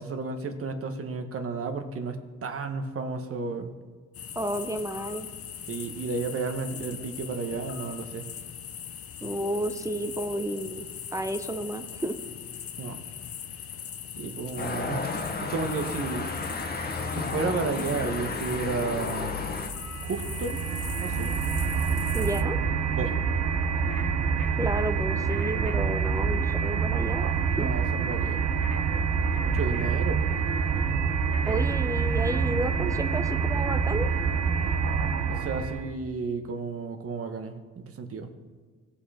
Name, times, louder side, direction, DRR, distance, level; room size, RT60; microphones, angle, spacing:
voice 1, 0.0-3.7 5.7-8.3 12.8-13.0 14.2-15.1 15.4-16.3 17.1-19.5 20.0-20.6 21.0-21.4 22.9-23.1 27.5-28.4 29.4-30.2 35.3-38.3, right 4 dB, 50° right, 7 dB, 1.3 m, -32 dB
sound 1, 4.1-22.4, left 8 dB, 50° left, 0.7 m, -40 dB
voice 2, 4.4-5.3 9.2-10.8 11.1-12.2 22.1-22.6 24.6-27.3 27.6-27.7 31.5-34.1, right 1 dB, 10° right, 8 dB, 0.7 m, -31 dB
sound 2, 14.6-19.7, left 3 dB, 30° left, 1.2 m, -32 dB
sound 3, 19.7-35.9, right 6 dB, 65° right, 1.0 m, -26 dB
17.0 x 5.7 x 4.3 m, 1.5 s
cardioid pair, 90°, 30 cm